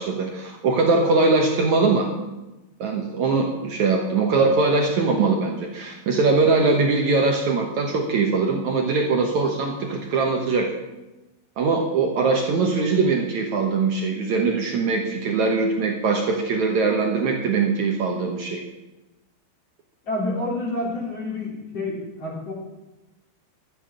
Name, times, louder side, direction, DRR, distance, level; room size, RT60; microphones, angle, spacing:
voice 1, 0.0-2.1 2.8-10.7 11.6-18.6, right 4 dB, 75° right, 2 dB, 1.7 m, -21 dB
voice 2, 20.1-22.5, left 2 dB, 35° left, -4 dB, 4.4 m, -28 dB
13.0 x 9.3 x 6.9 m, 1.0 s
omnidirectional pair, 5.0 m